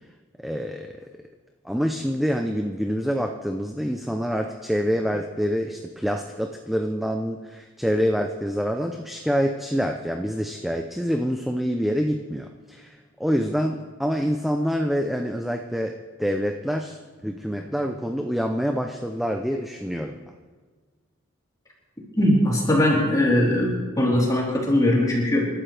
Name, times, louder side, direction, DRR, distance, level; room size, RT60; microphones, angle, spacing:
voice 1, 0.4-1.0 1.6-20.2, equal, ahead, 3 dB, 0.5 m, -26 dB
voice 2, 22.2-25.5, left 1 dB, 15° left, -5 dB, 3.8 m, -20 dB
28.0 x 12.5 x 3.4 m, 1.4 s
head